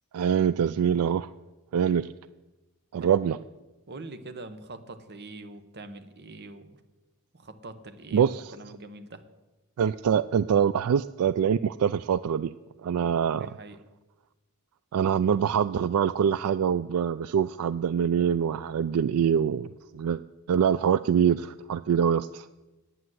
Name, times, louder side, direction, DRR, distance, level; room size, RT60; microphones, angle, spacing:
voice 1, 0.1-1.3 1.7-2.1 2.9-3.4 8.1-8.5 9.8-12.5 12.8-13.5 14.9-20.2 20.5-22.5, right 8 dB, 75° right, 15 dB, 0.3 m, -24 dB
voice 2, 3.9-6.8 7.3-9.2 13.0-13.8, right 2 dB, 50° right, 9 dB, 1.0 m, -44 dB
9.9 x 9.3 x 7.8 m, 1.1 s
head